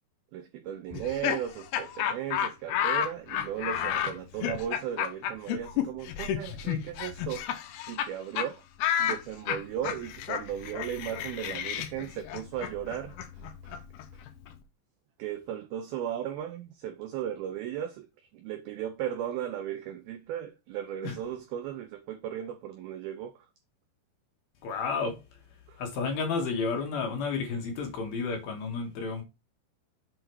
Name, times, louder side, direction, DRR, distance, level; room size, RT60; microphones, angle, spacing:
voice 1, 0.3-7.5 7.9-8.6 9.0-13.2 13.6-13.7 15.2-18.1 18.3-23.5 25.7-25.8, right 10 dB, 85° right, 2.1 m, -36 dB
Laughter, 0.9-8.1 8.4-8.5 8.8-14.5, left 9 dB, 80° left, 2.3 m, -31 dB
voice 2, 24.6-25.2 25.8-29.2, left 4 dB, 65° left, 3.0 m, -31 dB
7.9 x 4.0 x 4.5 m
omnidirectional pair, 5.2 m